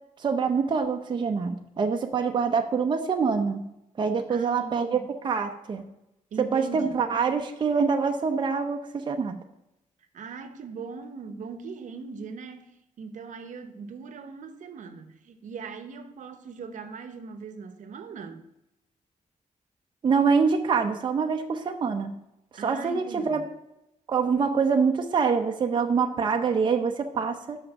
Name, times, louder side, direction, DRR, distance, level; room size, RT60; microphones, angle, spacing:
voice 1, 0.2-3.7 4.0-5.9 6.4-9.4 20.0-22.2 22.6-23.4 24.1-27.6, right 5 dB, 35° right, 0.7 m, -25 dB
voice 2, 4.3-5.1 6.3-7.0 10.1-12.7 13.0-18.5 22.6-23.4, right 5 dB, 70° right, 0.9 m, -40 dB
6.3 x 5.8 x 6.9 m
wide cardioid pair, 160°, 13 cm